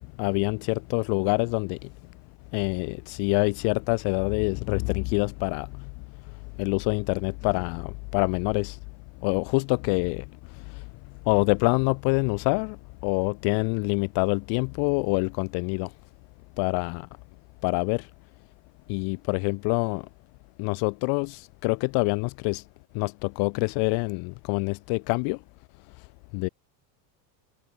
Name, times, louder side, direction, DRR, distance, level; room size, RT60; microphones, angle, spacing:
voice 1, 0.2-0.6 0.9-1.8 2.5-5.7 6.6-7.8 8.1-8.7 9.2-10.2 11.3-12.7 13.0-15.9 16.6-17.0 17.6-18.0 18.9-20.0 20.6-21.3 21.6-22.6 23.0-23.1 23.4-24.2 24.5-25.4 26.3-26.5, left 33 dB, 50° left, 0.6 m, -25 dB
supercardioid pair, 145°, 49 cm